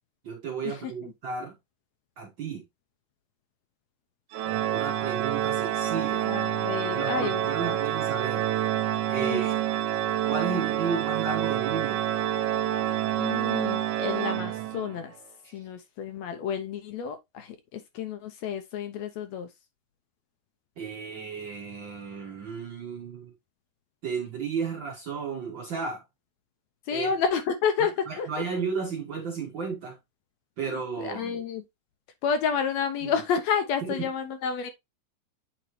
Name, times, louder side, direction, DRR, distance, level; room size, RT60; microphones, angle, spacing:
voice 1, 0.2-1.5 2.2-2.6 4.7-6.3 6.9-8.5 9.1-9.6 10.2-12.0 15.4-15.6 20.8-23.3 24.0-26.0 26.9-27.2 28.1-30.0 30.6-31.4 33.0-33.1 33.8-34.1, right 5 dB, 55° right, 1.4 m, -33 dB
Organ, 4.3-15.0, right 12 dB, 85° right, 2.0 m, -27 dB
voice 2, 6.2-7.8 9.2-9.4 13.2-15.1 15.5-19.5 26.9-28.4 30.6-31.6 32.2-34.7, left 6 dB, 75° left, 1.8 m, -30 dB
8.5 x 4.0 x 3.0 m
omnidirectional pair, 3.5 m